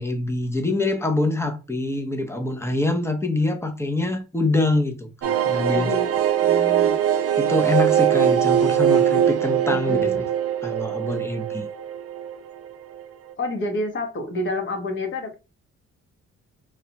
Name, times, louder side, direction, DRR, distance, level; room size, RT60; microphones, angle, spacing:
voice 1, 0.0-5.9 6.5-6.6 7.4-10.2 10.6-11.7, left 2 dB, 10° left, 0.7 m, -25 dB
sound 1, 5.2-12.7 13.0-13.1 13.3-13.4, right 9 dB, 50° right, 0.5 m, -21 dB
voice 2, 5.7-6.1 6.4-7.3 9.7-10.3 13.4-15.3, left 1 dB, 40° left, 1.0 m, -29 dB
3.3 x 2.4 x 2.9 m
cardioid pair, 90°, 30 cm